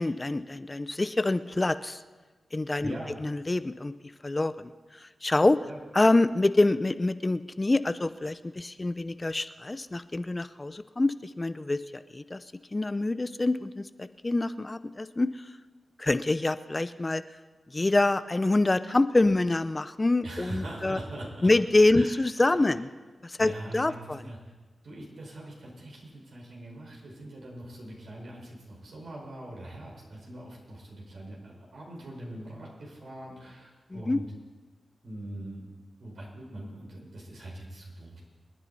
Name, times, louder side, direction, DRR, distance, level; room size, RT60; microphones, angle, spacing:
voice 1, 0.0-2.0 2.5-2.9 3.2-3.9 4.2-4.7 5.2-5.6 5.9-12.4 12.7-15.3 16.0-17.2 17.7-21.0 21.4-22.9 23.2-24.2 33.9-34.2, left 2 dB, 30° left, 13 dB, 0.6 m, -26 dB
voice 2, 2.8-3.1 5.6-5.8 20.2-21.5 21.9-22.5 23.4-24.4 24.8-34.3 35.0-35.6 36.0-38.2, right 1 dB, 75° right, -3 dB, 5.1 m, -42 dB
26.0 x 10.0 x 4.2 m, 1.3 s
cardioid pair, 40°, 0 cm